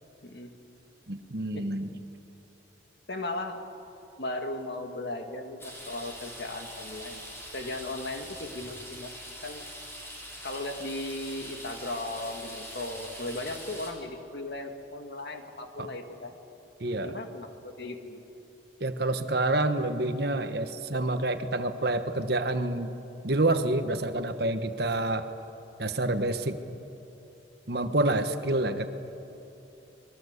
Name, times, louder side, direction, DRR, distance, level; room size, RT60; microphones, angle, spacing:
voice 1, 0.2-0.5 1.5-1.7 3.1-3.6 4.2-7.2 7.5-9.1 9.4-9.7 10.4-16.3 17.0-18.2, left 2 dB, 60° left, 5 dB, 2.2 m, -37 dB
voice 2, 1.1-1.9 15.8-15.9 16.8-17.2 18.8-22.9 23.2-25.3 25.8-26.6 27.7-28.9, right 2 dB, 55° right, 8 dB, 1.3 m, -28 dB
sound 1, 5.6-13.9, equal, 15° left, 4.4 m, -43 dB
26.5 x 21.5 x 8.2 m, 2.9 s
head